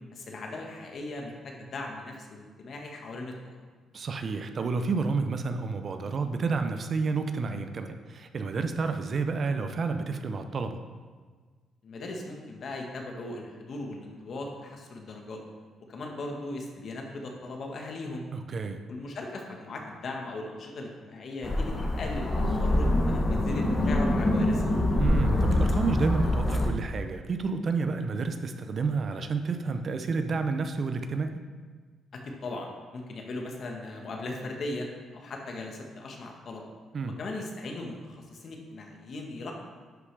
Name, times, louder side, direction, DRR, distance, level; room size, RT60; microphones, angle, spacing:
voice 1, 0.1-3.6 11.8-15.4 15.9-18.3 18.9-24.7 32.1-34.9 35.1-36.7 37.2-39.5, left 2 dB, 55° left, 1 dB, 1.3 m, -38 dB
voice 2, 3.9-10.8 18.3-18.8 25.0-31.3 36.9-37.2, right 4 dB, 45° right, 7 dB, 0.6 m, -30 dB
sound 1, 21.4-26.7, left 1 dB, 25° left, 1.0 m, -25 dB
11.0 x 5.0 x 3.3 m, 1.5 s
cardioid pair, 90°, 0 cm